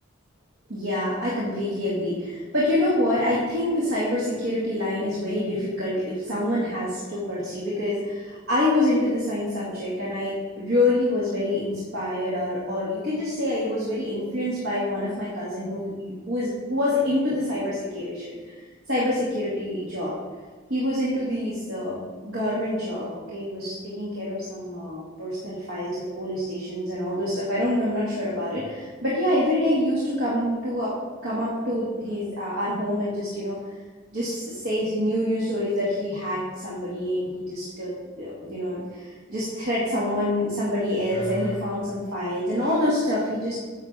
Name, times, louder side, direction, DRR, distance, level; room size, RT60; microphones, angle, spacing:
voice 1, 0.7-18.5 18.9-20.1 20.7-30.9 31.2-33.6 34.1-43.6, left 1 dB, 70° right, -7 dB, 2.1 m, -26 dB
9.8 x 7.1 x 3.6 m, 1.4 s
head